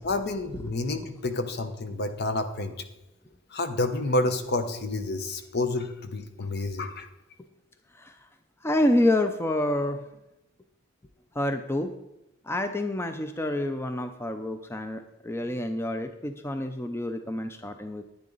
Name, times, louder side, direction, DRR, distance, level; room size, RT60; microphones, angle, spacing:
voice 1, 0.0-2.7 3.5-7.1, left 2 dB, 55° left, 8 dB, 1.0 m, -29 dB
voice 2, 8.6-10.1 11.3-11.9 12.4-18.0, left 1 dB, 15° left, 7 dB, 0.5 m, -28 dB
10.5 x 10.0 x 4.0 m, 0.92 s
head